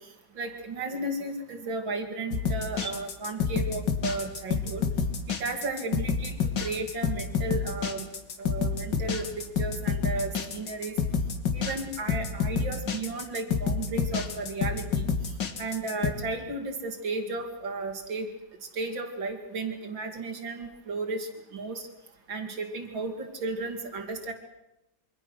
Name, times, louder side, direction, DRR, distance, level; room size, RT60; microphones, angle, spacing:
voice 1, 0.3-4.9 5.3-8.1 8.4-10.9 11.5-15.1 15.6-18.3 18.7-21.8 22.3-24.3, right 3 dB, 85° right, 5 dB, 3.2 m, -34 dB
sound 1, 2.3-16.1, left 6 dB, 70° left, 2.5 m, -29 dB
27.0 x 24.5 x 6.4 m, 0.90 s
omnidirectional pair, 2.0 m